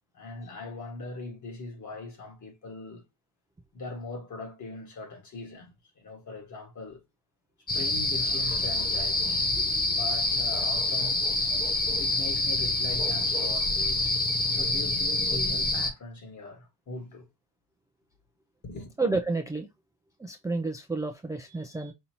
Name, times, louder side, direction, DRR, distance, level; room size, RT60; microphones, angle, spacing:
voice 1, 0.1-3.0 3.7-5.7 6.0-7.0 7.7-11.3 12.0-14.2 14.5-17.3 18.6-19.0, left 3 dB, 45° left, 1.8 m, -41 dB
sound 1, 7.7-15.9, left 2 dB, 20° left, 0.8 m, -27 dB
voice 2, 19.0-19.7 20.2-21.9, right 3 dB, 10° right, 0.4 m, -30 dB
5.5 x 2.6 x 2.9 m
cardioid pair, 120°, 41 cm